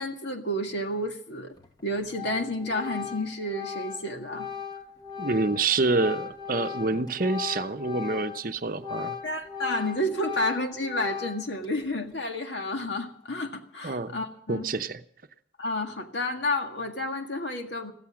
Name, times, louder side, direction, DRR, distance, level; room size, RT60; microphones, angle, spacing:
voice 1, 0.0-1.5 1.8-4.5 9.2-14.7 15.6-17.9, left 1 dB, 70° left, 5 dB, 1.9 m, -30 dB
Organ, 1.6-1.8 2.1-8.5 8.8-11.7, left 7 dB, 20° left, 1.1 m, -37 dB
voice 2, 5.2-9.2 13.8-14.2 14.5-15.0, right 3 dB, 50° right, 9 dB, 0.8 m, -27 dB
15.0 x 14.5 x 6.3 m, 0.63 s
head